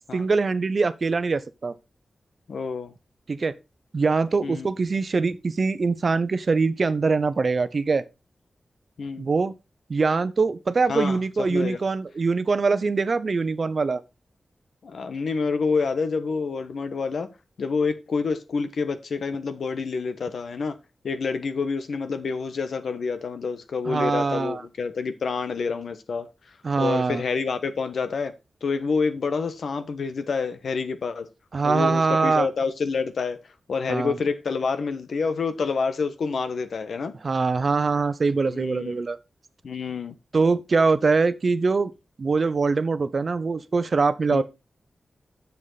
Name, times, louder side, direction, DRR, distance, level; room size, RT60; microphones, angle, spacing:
voice 1, 0.1-1.7 3.3-3.5 3.9-8.0 9.2-9.5 9.9-14.0 23.8-24.6 26.6-27.2 31.5-32.5 33.9-34.2 37.2-39.2 40.3-41.9 42.2-44.4, right 4 dB, 50° right, 0.8 m, -23 dB
voice 2, 2.5-2.9 4.4-4.7 9.0-9.3 10.9-11.8 14.8-17.3 17.6-20.8 21.0-26.3 26.8-28.3 28.6-31.3 31.6-33.4 33.7-37.1 38.5-38.9 39.6-40.1 44.3-44.4, left 4 dB, 80° left, 1.3 m, -28 dB
11.0 x 7.2 x 4.1 m
wide cardioid pair, 110°, 0 cm